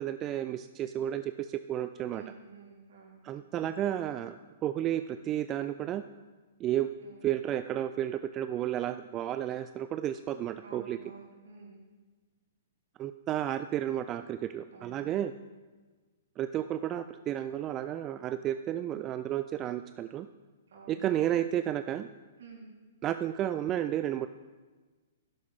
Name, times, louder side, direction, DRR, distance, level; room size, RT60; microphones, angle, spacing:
voice 1, 0.0-2.2 3.2-4.4 4.6-6.0 6.6-6.9 7.2-11.0 13.0-15.3 16.4-20.3 20.9-22.1 23.0-24.3, right 11 dB, 30° right, 10 dB, 0.3 m, -32 dB
voice 2, 2.1-3.2 7.0-7.3 10.6-11.9 14.7-15.3 20.7-21.1 22.4-22.7, right 4 dB, 65° right, -2 dB, 3.7 m, -51 dB
11.5 x 11.0 x 3.6 m, 1.3 s
figure-of-eight pair, 115°, 0 cm